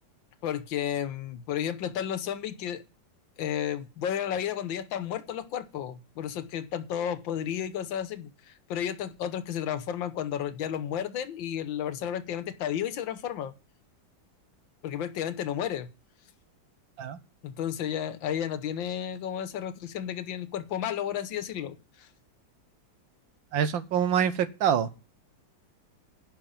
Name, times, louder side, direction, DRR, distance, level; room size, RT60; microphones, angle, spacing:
voice 1, 0.4-2.8 3.4-13.5 14.8-15.9 17.4-22.1, left 9 dB, 85° left, 1.7 m, -32 dB
voice 2, 23.5-24.9, right 8 dB, 80° right, 1.8 m, -25 dB
11.0 x 5.7 x 8.7 m
omnidirectional pair, 2.1 m